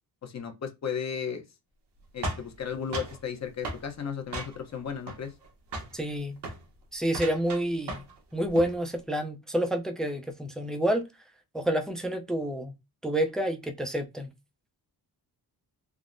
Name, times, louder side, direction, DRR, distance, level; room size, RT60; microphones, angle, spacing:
voice 1, 0.2-1.4 2.1-5.3, left 7 dB, 40° left, 0.7 m, -35 dB
sound 1, 2.2-3.2 3.6-3.9 4.3-4.8 5.1-5.5 5.7-6.0 6.4-6.6 7.1-8.2 8.4-8.8, right 2 dB, 70° right, 1.0 m, -36 dB
voice 2, 5.9-6.4 6.9-8.0 8.3-11.1 11.5-12.7 13.0-14.3, right 1 dB, ahead, 0.3 m, -28 dB
3.5 x 2.0 x 2.5 m
wide cardioid pair, 105°, 42 cm